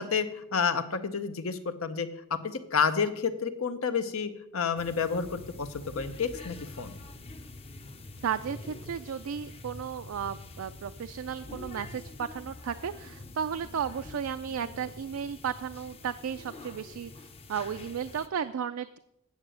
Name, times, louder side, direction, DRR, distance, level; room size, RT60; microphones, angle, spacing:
voice 1, 0.0-6.9, left 6 dB, 85° left, 10 dB, 0.8 m, -30 dB
sound 1, 4.8-18.3, left 2 dB, 30° left, 0.6 m, -46 dB
voice 2, 8.2-19.0, right 7 dB, 85° right, 10 dB, 0.4 m, -34 dB
9.5 x 6.8 x 6.3 m, 0.80 s
head